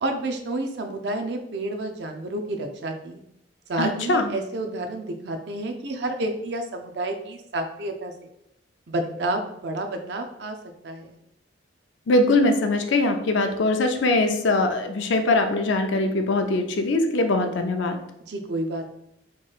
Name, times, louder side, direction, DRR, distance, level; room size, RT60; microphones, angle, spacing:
voice 1, 0.0-3.2 3.7-8.3 8.9-10.6 10.8-11.2 18.3-18.9, right 2 dB, 60° right, 5 dB, 0.5 m, -30 dB
voice 2, 3.8-4.3 12.1-18.0, left 2 dB, 70° left, 6 dB, 0.5 m, -22 dB
4.5 x 3.1 x 2.4 m, 0.78 s
head